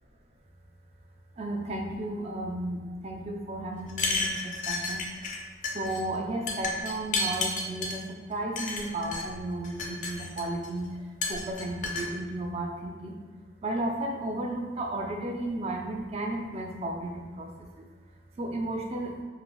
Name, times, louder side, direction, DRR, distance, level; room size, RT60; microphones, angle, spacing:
voice 1, 1.4-5.1 5.7-10.9 11.3-13.1 13.6-17.9 18.4-19.1, right 1 dB, 35° right, 0 dB, 0.3 m, -34 dB
sound 1, 3.9-5.4 5.6-6.0 6.5-8.0 8.6-9.2 9.6-10.7 11.2-12.1, left 3 dB, 40° left, 0.3 m, -31 dB
3.2 x 2.4 x 2.2 m, 1.5 s
head